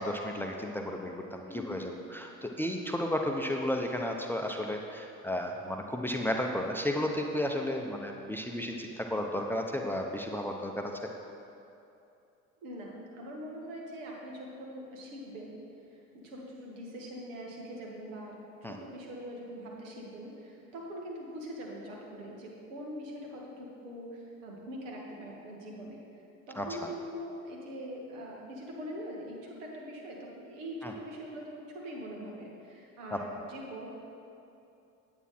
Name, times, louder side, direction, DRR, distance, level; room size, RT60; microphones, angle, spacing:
voice 1, 0.0-10.9 18.6-18.8 26.6-26.7 30.8-30.9 33.1-33.2, left 1 dB, 5° left, 2 dB, 0.8 m, -33 dB
voice 2, 1.5-1.9 12.6-15.6 15.9-18.4 18.7-26.0 26.5-33.9, equal, 75° right, -2 dB, 2.0 m, -43 dB
9.0 x 8.7 x 4.4 m, 2.7 s
hypercardioid pair, 70°, 39 cm